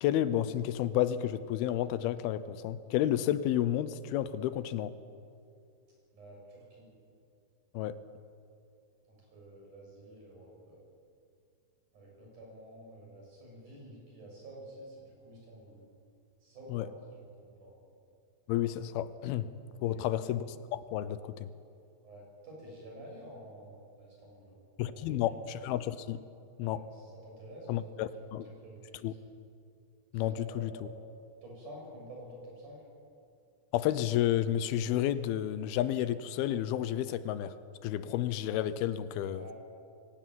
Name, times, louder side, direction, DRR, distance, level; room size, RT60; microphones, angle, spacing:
voice 1, 0.0-4.9 7.7-8.0 16.7-16.9 18.5-19.5 19.8-20.5 20.7-21.5 24.8-26.2 26.6-26.8 27.7-28.5 29.0-29.1 30.1-30.7 33.7-37.5 37.8-39.5, left 12 dB, 85° left, 14 dB, 2.6 m, -31 dB
voice 2, 6.1-6.9 9.3-10.8 11.9-15.8 16.4-17.7 19.9-20.1 22.0-24.5 24.9-25.0 26.6-28.3 28.6-29.2 30.1-31.0 31.4-32.8 39.3-39.5, right 1 dB, 55° right, -3 dB, 8.9 m, -50 dB
23.0 x 17.0 x 9.3 m, 2.5 s
omnidirectional pair, 4.4 m